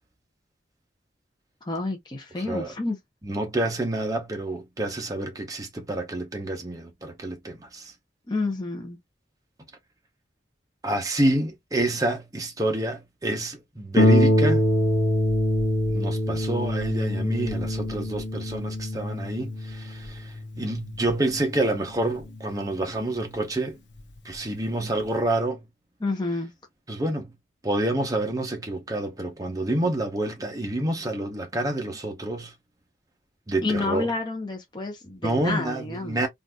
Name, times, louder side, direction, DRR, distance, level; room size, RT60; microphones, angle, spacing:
voice 1, 1.6-3.0 8.3-9.0 26.0-26.5 33.6-36.2, left 3 dB, 25° left, 0.7 m, -29 dB
voice 2, 2.4-2.7 3.2-7.9 10.8-14.7 15.9-23.8 24.2-25.6 26.9-27.3 27.6-32.5 33.5-34.1 35.2-36.3, right 1 dB, 20° right, 0.7 m, -28 dB
Harp, 14.0-23.1 24.0-24.1 24.5-24.6, left 1 dB, 80° left, 0.8 m, -25 dB
3.9 x 2.5 x 2.2 m
head